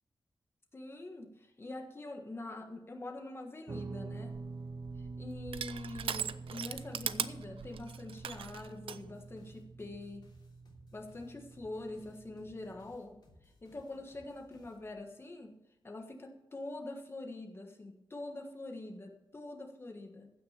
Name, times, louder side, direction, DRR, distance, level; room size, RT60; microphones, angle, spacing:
voice 1, 0.7-4.4 5.2-10.3 10.9-13.2 13.6-15.6 15.8-20.3, left 2 dB, 25° left, 3 dB, 1.6 m, -45 dB
Guitar, 3.7-13.0, right 3 dB, 40° right, 0.7 m, -47 dB
Crushing, 4.1-9.0, right 8 dB, 90° right, 0.5 m, -40 dB
sound 1, 8.1-15.2, left 1 dB, 55° left, 3.1 m, -64 dB
15.5 x 6.2 x 6.7 m, 0.90 s
wide cardioid pair, 155°, 9 cm